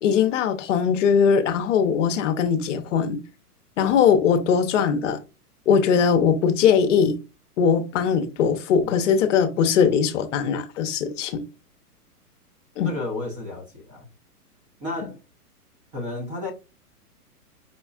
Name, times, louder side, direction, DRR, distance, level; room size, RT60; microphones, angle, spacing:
voice 1, 0.0-3.2 3.8-5.2 5.7-7.2 7.6-11.4 12.8-12.9, left 7 dB, 50° left, 0.7 m, -20 dB
voice 2, 12.8-14.1 14.8-15.2 15.9-16.5, left 2 dB, 15° right, 0.7 m, -32 dB
5.1 x 2.3 x 2.3 m
hypercardioid pair, 140°, 46 cm